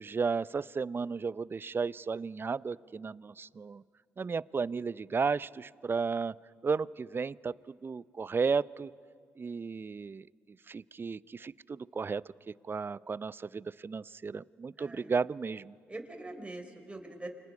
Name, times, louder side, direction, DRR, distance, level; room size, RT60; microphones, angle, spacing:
voice 1, 0.0-3.8 4.2-6.3 6.6-8.9 9.4-10.3 10.7-12.2 12.6-15.8, right 5 dB, 35° right, 21 dB, 0.5 m, -34 dB
voice 2, 14.8-15.1 15.9-17.3, right 2 dB, 20° right, 4 dB, 4.5 m, -43 dB
29.5 x 25.5 x 5.4 m, 2.3 s
hypercardioid pair, 45°, 7 cm